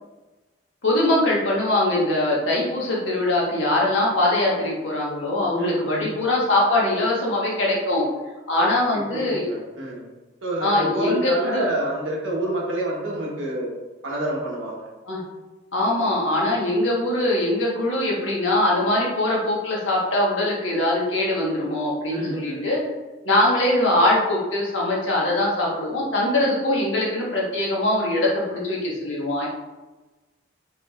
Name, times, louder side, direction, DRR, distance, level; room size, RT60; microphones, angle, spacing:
voice 1, 0.8-8.1 8.5-9.5 10.6-11.6 15.1-15.2 15.7-22.8 23.2-29.5, left 1 dB, 80° left, -4 dB, 1.2 m, -22 dB
voice 2, 5.6-6.1 8.6-8.7 8.9-10.1 10.4-13.7 14.0-14.9 22.1-22.7, right 1 dB, 85° right, -3 dB, 1.1 m, -28 dB
4.8 x 3.2 x 2.4 m, 1.2 s
head